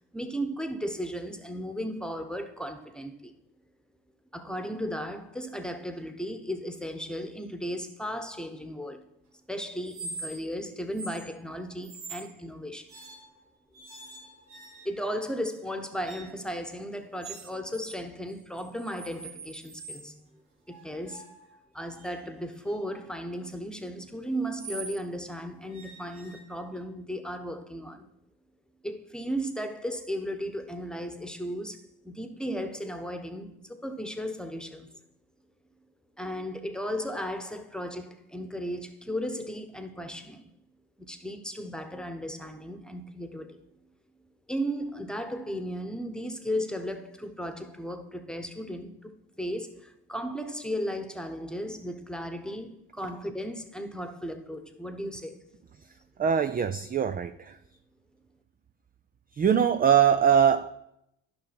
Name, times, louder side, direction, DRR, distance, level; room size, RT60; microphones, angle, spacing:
voice 1, 0.1-3.3 4.3-9.1 9.5-12.9 14.8-20.3 20.7-21.2 21.7-28.0 28.8-31.8 32.0-34.9 36.2-40.5 41.0-43.6 44.5-55.4, equal, ahead, 1.1 m, -35 dB
sound 1, 9.8-10.6 10.9-11.3 11.8-12.3 12.9-13.4 13.7-15.1 16.0-16.4 17.2-18.0 18.3-20.1 20.7-25.0 25.7-26.9, right 3 dB, 85° right, 1.6 m, -44 dB
voice 2, 56.2-57.6 59.3-60.7, right 8 dB, 25° right, 0.3 m, -22 dB
10.5 x 5.5 x 4.3 m
hypercardioid pair, 50°, 42 cm